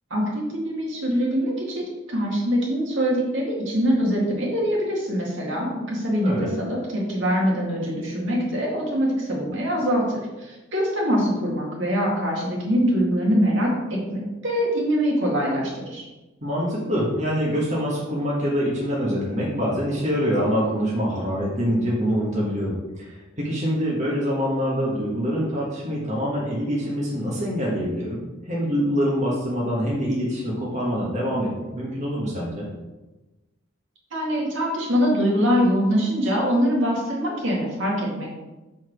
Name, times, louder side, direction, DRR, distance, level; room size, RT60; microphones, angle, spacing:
voice 1, 0.1-16.1 34.1-38.3, equal, 60° right, -2 dB, 2.1 m, -23 dB
voice 2, 6.2-6.5 16.4-28.2 28.4-31.5 31.7-32.6, equal, 35° right, -5 dB, 1.5 m, -25 dB
5.9 x 4.8 x 6.2 m, 1.1 s
head